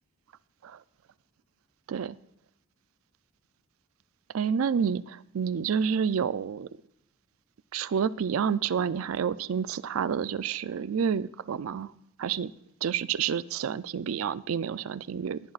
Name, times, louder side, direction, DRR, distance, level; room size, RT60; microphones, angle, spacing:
voice 1, 4.3-6.7 7.7-11.9 12.2-12.5 12.8-15.4, right 7 dB, 75° right, 0.4 m, -29 dB
18.0 x 11.0 x 2.4 m
head